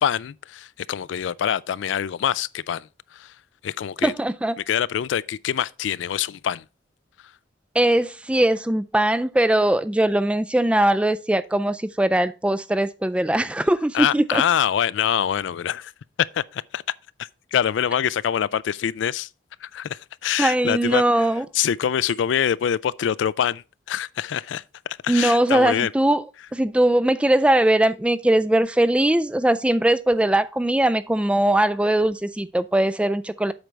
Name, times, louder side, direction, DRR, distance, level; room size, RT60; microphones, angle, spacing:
voice 1, 0.0-3.4 3.6-4.1 4.6-6.7 7.2-7.3 13.9-15.9 16.3-16.8 17.2-19.3 19.6-21.3 21.5-25.9, left 9 dB, 75° left, 0.3 m, -25 dB
voice 2, 4.0-4.6 7.8-14.4 20.4-21.5 25.1-26.2 26.5-33.5, right 1 dB, 5° right, 0.3 m, -20 dB
7.9 x 5.2 x 4.4 m
head